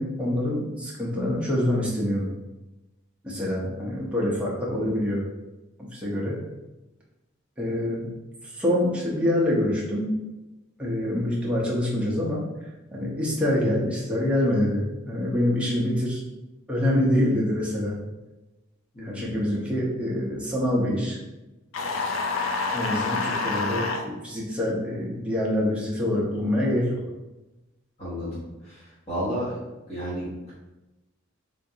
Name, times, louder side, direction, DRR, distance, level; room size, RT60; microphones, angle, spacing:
voice 1, 0.0-2.3 3.2-5.2 5.9-6.4 7.6-8.1 8.5-10.1 10.8-12.4 12.9-16.2 16.7-18.0 19.0-21.2 22.7-27.0, left 1 dB, 5° right, -5 dB, 0.7 m, -25 dB
voice 2, 18.9-19.4 28.0-28.4 29.1-29.5 29.9-30.5, equal, 30° left, -10 dB, 1.1 m, -31 dB
sound 1, 21.7-24.0, left 4 dB, 70° left, 0.4 m, -27 dB
3.5 x 2.5 x 2.7 m, 1.0 s
head